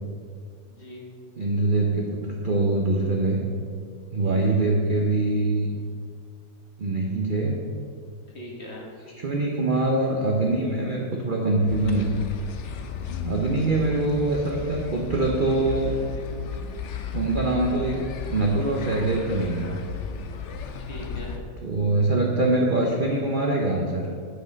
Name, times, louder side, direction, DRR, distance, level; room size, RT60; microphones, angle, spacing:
voice 1, 0.6-1.1 4.2-4.6 8.3-8.9 20.8-21.4, left 1 dB, 40° left, -2 dB, 1.4 m, -40 dB
voice 2, 1.4-3.4 4.1-5.7 6.8-7.6 9.2-12.1 13.2-15.9 17.1-18.0 18.3-19.8 21.6-24.1, right 2 dB, 45° right, -1 dB, 0.6 m, -23 dB
sound 1, 11.7-21.4, left 5 dB, 85° left, 0.6 m, -34 dB
7.7 x 6.5 x 5.2 m, 2.1 s
omnidirectional pair, 2.0 m